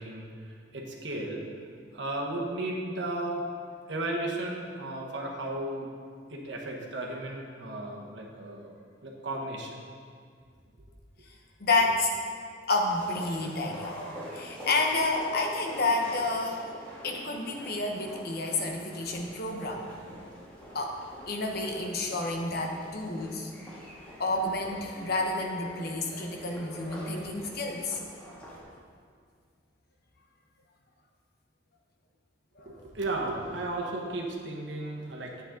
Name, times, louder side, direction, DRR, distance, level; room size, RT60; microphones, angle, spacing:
voice 1, 0.0-3.4 3.9-5.9 6.3-8.7 9.0-9.8 11.8-11.9 32.6-35.4, right 2 dB, 65° right, -1 dB, 1.4 m, -35 dB
voice 2, 11.6-12.1 12.7-14.0 14.3-16.6 17.0-19.8 20.7-21.0 21.3-23.5 24.2-28.0 32.6-32.9, left 2 dB, 55° left, 2 dB, 1.2 m, -30 dB
sound 1, 12.8-28.6, equal, 5° left, 1.8 m, -45 dB
11.0 x 8.1 x 3.8 m, 2.1 s
head